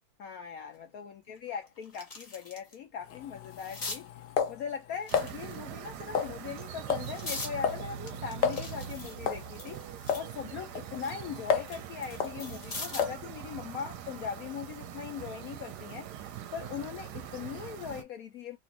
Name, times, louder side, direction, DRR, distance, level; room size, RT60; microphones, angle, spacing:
voice 1, 0.2-4.1 4.5-16.1 16.5-18.6, left 7 dB, 85° left, 0.7 m, -40 dB
sound 1, 0.7-0.8 1.3-2.8 3.1-4.0 5.0-5.9 6.5-7.5 8.1-10.3 10.7-13.2 14.6-14.8, left 3 dB, 40° left, 0.7 m, -43 dB
sound 2, 3.0-5.3 6.1-6.6 6.9-7.1 7.4-7.9 8.1-8.2 8.4-8.7 9.3-9.5 10.1-10.3 10.8-11.8 12.2-12.4 13.0-13.3, left 7 dB, 70° left, 1.2 m, -31 dB
sound 3, 5.1-18.0, right 9 dB, 70° right, 1.1 m, -42 dB
4.3 x 2.5 x 2.8 m
omnidirectional pair, 2.1 m